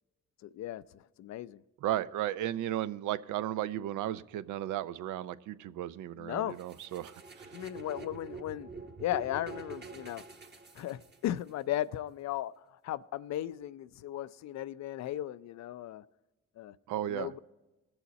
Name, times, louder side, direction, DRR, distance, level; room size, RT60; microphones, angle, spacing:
voice 1, 0.4-1.6 6.2-6.6 7.5-8.7 9.0-10.2 10.7-16.0 16.6-16.7 17.1-17.4, left 13 dB, 65° left, 0.4 m, -36 dB
voice 2, 1.8-7.5 16.9-17.3, right 12 dB, 80° right, 0.5 m, -35 dB
sound 1, 6.6-11.5, right 4 dB, 35° right, 1.2 m, -47 dB
20.0 x 7.0 x 4.1 m
cardioid pair, 90°, 30 cm